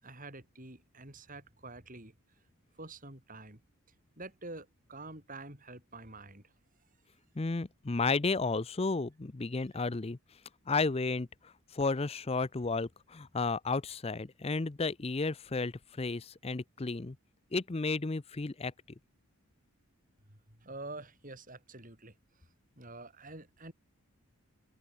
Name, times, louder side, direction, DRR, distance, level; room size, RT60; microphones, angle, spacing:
voice 1, 0.0-2.1 2.8-3.6 4.2-6.4 20.3-22.1 22.8-23.7, right 2 dB, 40° right, 7.0 m, -47 dB
voice 2, 7.4-10.2 10.7-17.2 17.5-18.7, left 3 dB, 25° left, 0.6 m, -33 dB
head